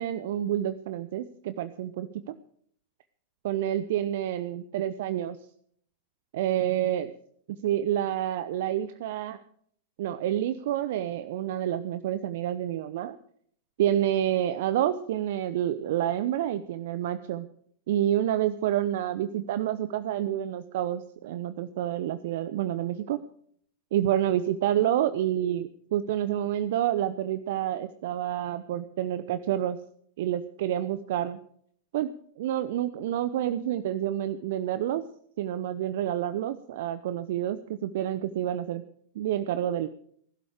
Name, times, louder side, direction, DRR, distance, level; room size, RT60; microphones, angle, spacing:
voice 1, 0.0-2.3 3.4-5.4 6.3-7.1 7.5-9.4 10.0-13.2 13.8-17.5 17.9-23.2 23.9-29.8 30.2-31.4 31.9-32.1 32.4-35.0 35.4-38.8 39.1-39.9, right 11 dB, 60° right, 14 dB, 0.8 m, -28 dB
20.0 x 12.0 x 5.0 m, 0.62 s
figure-of-eight pair, 95°, 0 cm